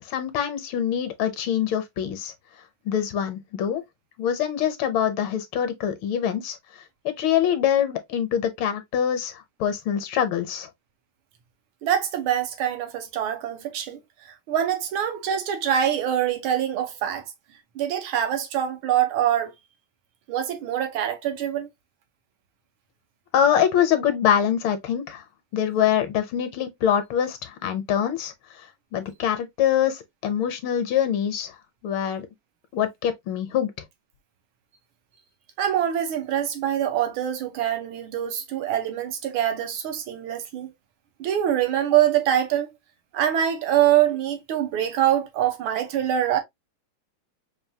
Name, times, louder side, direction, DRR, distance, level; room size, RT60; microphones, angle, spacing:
voice 1, 0.1-2.3 2.9-3.8 4.2-6.6 7.2-9.3 9.6-10.7 23.3-25.2 25.5-28.3 28.9-31.5 31.8-32.2 32.7-33.7, left 9 dB, 75° left, 1.5 m, -24 dB
voice 2, 11.8-14.0 14.2-17.2 17.7-19.5 20.3-21.7 35.6-40.7 41.2-42.7 43.1-46.4, right 10 dB, 70° right, 1.7 m, -24 dB
5.1 x 2.6 x 2.7 m
omnidirectional pair, 2.4 m